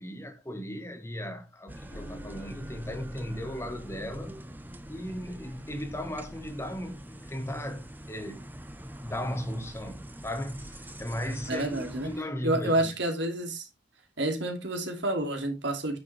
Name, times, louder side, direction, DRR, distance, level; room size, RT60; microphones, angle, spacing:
voice 1, 0.0-4.4 4.9-8.4 9.0-12.9, equal, 15° left, 1.5 m, -36 dB
sound 1, 1.7-12.2, right 1 dB, 10° right, 0.9 m, -44 dB
sound 2, 1.9-7.0, equal, 30° left, 1.9 m, -48 dB
voice 2, 11.5-12.1 12.4-13.7 14.2-16.0, right 1 dB, 70° right, 2.6 m, -29 dB
9.6 x 7.3 x 3.4 m
head